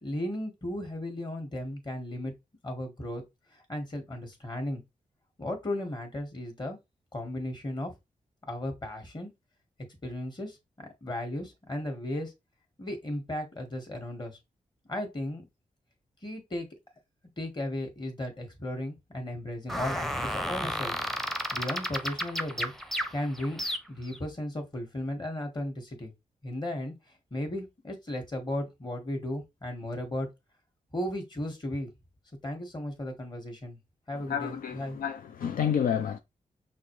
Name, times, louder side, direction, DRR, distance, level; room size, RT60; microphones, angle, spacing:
voice 1, 0.0-2.3 2.6-3.2 3.5-4.8 5.4-6.8 7.1-7.9 8.5-9.3 10.0-10.6 11.0-12.3 12.8-14.4 14.9-15.4 16.2-16.7 17.4-20.9 21.5-22.7 23.1-23.6 23.9-26.1 26.4-26.9 27.3-30.3 30.9-31.9 32.4-33.8 34.1-35.0, left 1 dB, 30° left, 1.7 m, -35 dB
sound 1, 19.7-24.2, equal, ahead, 0.7 m, -33 dB
voice 2, 34.3-36.2, left 8 dB, 80° left, 0.5 m, -29 dB
5.8 x 2.7 x 3.2 m
cardioid pair, 70°, 14 cm